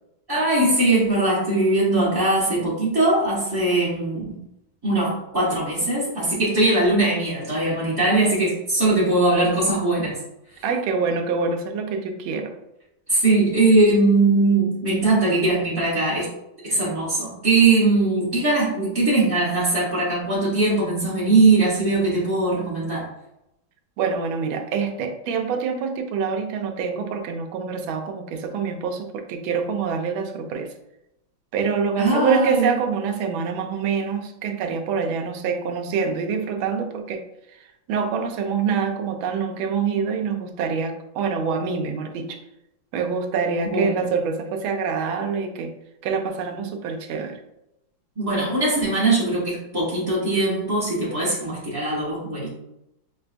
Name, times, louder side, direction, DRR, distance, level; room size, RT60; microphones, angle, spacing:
voice 1, 0.3-4.4 4.8-10.1 13.1-16.3 16.6-23.0 32.0-32.7 43.6-44.0 48.2-52.5, right 2 dB, 20° right, -9 dB, 0.5 m, -20 dB
voice 2, 10.6-12.5 24.0-30.7 31.5-37.3 37.9-42.4 42.9-45.7 46.0-47.4, right 5 dB, 85° right, 4 dB, 1.4 m, -25 dB
6.0 x 2.2 x 2.5 m, 0.85 s
omnidirectional pair, 2.2 m